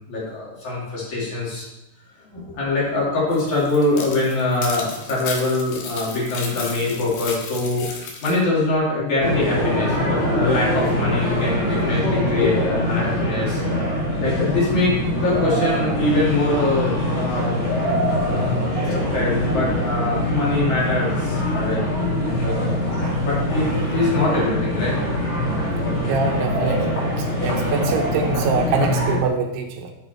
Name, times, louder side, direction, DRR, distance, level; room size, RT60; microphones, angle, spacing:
voice 1, 0.1-1.7 2.2-7.9 8.2-13.6 14.2-15.0 15.2-17.8 18.3-21.8 22.2-22.9 23.2-25.1, left 2 dB, 50° left, -7 dB, 3.9 m, -23 dB
sound 1, 3.3-8.4, left 4 dB, 70° left, 3.0 m, -34 dB
sound 2, 9.2-29.2, equal, 85° left, 4.5 m, -23 dB
voice 2, 26.1-26.9 27.2-29.9, right 5 dB, 85° right, 3 dB, 3.0 m, -24 dB
9.9 x 6.1 x 4.4 m, 0.95 s
omnidirectional pair, 4.6 m